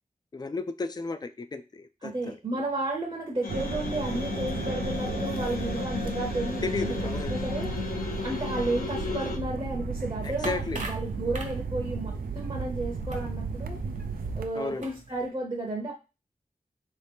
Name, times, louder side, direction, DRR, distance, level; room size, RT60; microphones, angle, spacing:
voice 1, 0.3-2.4 6.6-7.4 10.2-10.8 14.5-14.9, left 3 dB, 30° left, 9 dB, 0.4 m, -33 dB
voice 2, 2.0-7.7 8.2-13.8 14.4-15.9, right 2 dB, 35° right, -1 dB, 0.8 m, -33 dB
sound 1, 3.4-9.4, left 4 dB, 70° left, 0.7 m, -34 dB
sound 2, 3.5-14.5, right 4 dB, 80° right, 0.4 m, -34 dB
sound 3, 10.2-15.3, right 2 dB, 55° right, 1.1 m, -44 dB
3.6 x 2.8 x 3.4 m, 0.29 s
wide cardioid pair, 55°, 15 cm